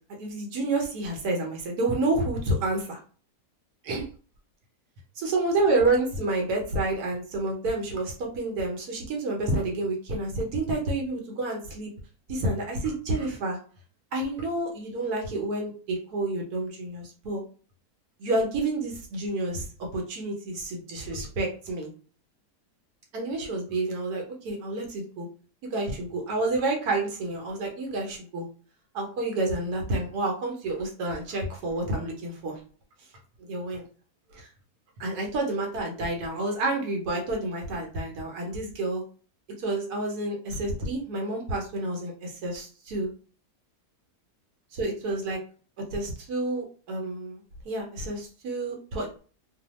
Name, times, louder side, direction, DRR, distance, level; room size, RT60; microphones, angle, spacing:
voice 1, 0.2-3.0 3.8-4.1 5.2-11.9 12.3-13.6 14.1-17.4 18.2-21.9 23.1-25.3 25.7-28.5 28.9-32.6 33.4-33.8 34.3-34.5 35.0-39.0 39.6-43.1 44.7-45.4 45.9-49.2, right 2 dB, 75° right, 1 dB, 1.1 m, -29 dB
2.7 x 2.1 x 2.9 m, 0.40 s
omnidirectional pair, 1.7 m